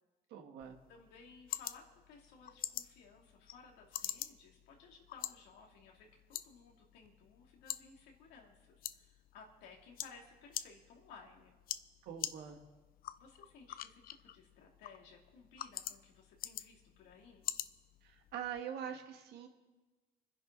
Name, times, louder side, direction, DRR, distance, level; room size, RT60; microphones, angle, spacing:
voice 1, 0.3-0.8 12.0-12.6 18.0-19.5, right 8 dB, 80° right, 4 dB, 1.9 m, -44 dB
sound 1, 0.6-18.6, left 12 dB, 60° left, 0.6 m, -47 dB
voice 2, 0.9-11.6 13.2-17.5, left 5 dB, 90° left, 0 dB, 2.9 m, -58 dB
25.5 x 10.5 x 4.1 m, 1.2 s
cardioid pair, 110°, 17 cm